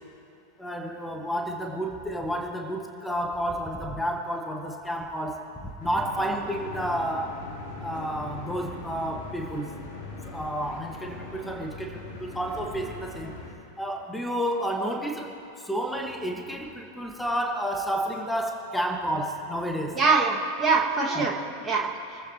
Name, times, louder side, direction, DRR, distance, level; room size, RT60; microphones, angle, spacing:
voice 1, 0.6-7.4 7.8-9.8 10.2-13.3 13.8-20.0 21.1-21.3, equal, 5° left, 2 dB, 1.6 m, -31 dB
sound 1, 5.8-13.5, left 3 dB, 50° left, 3.5 m, -40 dB
voice 2, 19.9-22.2, right 4 dB, 15° right, -3 dB, 2.0 m, -24 dB
28.0 x 14.5 x 3.0 m, 2.7 s
figure-of-eight pair, 90°, 0 cm